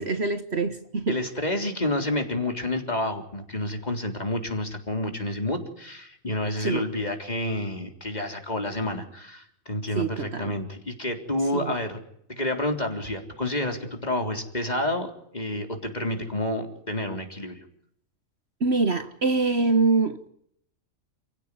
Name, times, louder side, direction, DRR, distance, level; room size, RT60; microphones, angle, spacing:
voice 1, 0.0-1.2 6.6-6.8 9.9-10.6 11.5-11.7 18.6-20.3, right 3 dB, 50° right, 1.5 m, -24 dB
voice 2, 1.1-12.0 12.3-17.6, left 1 dB, 30° left, 3.9 m, -29 dB
29.5 x 16.0 x 10.0 m
omnidirectional pair, 1.5 m